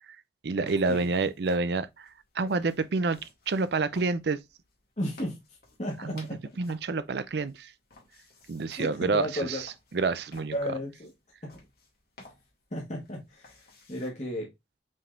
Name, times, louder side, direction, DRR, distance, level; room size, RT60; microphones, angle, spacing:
voice 1, 0.4-2.1 2.4-3.2 3.5-4.4 6.0-6.3 6.6-7.7 8.5-9.6 9.9-10.5, right 3 dB, 60° right, 0.5 m, -28 dB
sound 1, 0.6-14.1, left 2 dB, 55° left, 2.0 m, -57 dB
voice 2, 5.0-5.4 5.8-6.4 8.8-9.6 10.5-11.1 11.4-11.5 12.7-14.5, equal, 40° left, 1.3 m, -34 dB
5.4 x 3.5 x 2.5 m
head